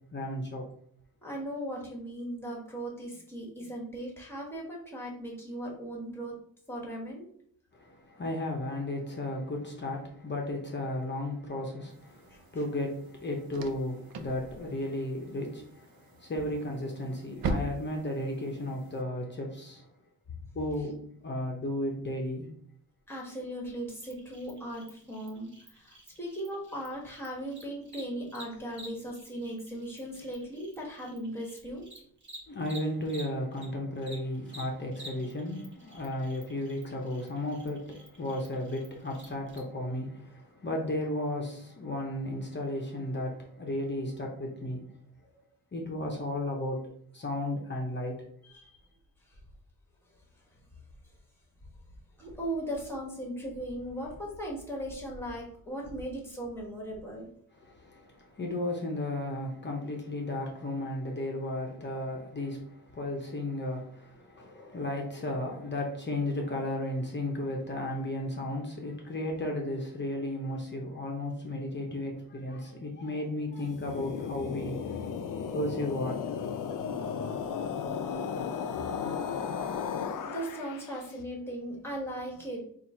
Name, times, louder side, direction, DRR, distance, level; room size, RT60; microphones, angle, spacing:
voice 1, 0.1-0.7 7.7-19.9 20.5-21.0 21.2-22.5 32.5-44.8 45.7-46.8 47.1-48.2 57.5-74.8 75.5-76.4, left 1 dB, 30° left, 0.7 m, -34 dB
voice 2, 1.2-6.3 6.7-7.3 12.3-12.4 23.1-31.9 48.5-48.8 52.2-57.3 78.8-79.0 80.3-82.6, right 1 dB, 5° left, 1.3 m, -38 dB
sound 1, 11.9-19.0, right 3 dB, 75° right, 0.6 m, -41 dB
Cricket, 24.0-33.7 34.0-39.6, right 1 dB, 30° right, 1.1 m, -51 dB
sound 2, 73.6-81.0, left 6 dB, 60° left, 0.5 m, -35 dB
4.2 x 2.5 x 4.3 m
wide cardioid pair, 140°, 36 cm